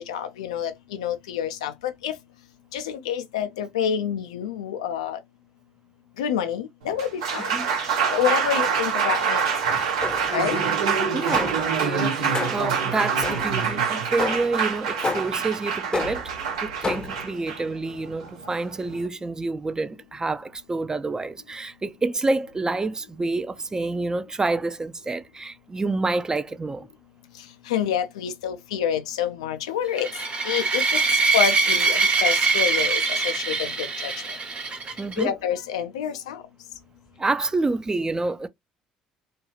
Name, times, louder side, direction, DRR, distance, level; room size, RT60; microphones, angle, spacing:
voice 1, 0.1-2.2 2.7-5.2 6.2-7.5 8.1-9.5 10.3-10.6 11.3-11.4 27.7-30.1 30.4-31.0 31.3-34.1 35.2-36.4, left 9 dB, 85° left, 0.4 m, -27 dB
Applause, 6.8-19.1, right 6 dB, 85° right, 0.8 m, -25 dB
sound 1, 10.0-10.5 11.3-11.8 12.3-12.8 13.2-13.7 14.2-14.6 15.0-15.5 15.9-16.4 16.8-17.3, left 3 dB, 25° left, 0.6 m, -30 dB
voice 2, 11.1-16.3 16.6-26.9 35.0-35.3 37.2-38.5, right 3 dB, 20° right, 0.4 m, -28 dB
sound 2, 30.0-35.2, right 4 dB, 40° right, 1.0 m, -23 dB
2.5 x 2.3 x 3.0 m
hypercardioid pair, 65°, 3 cm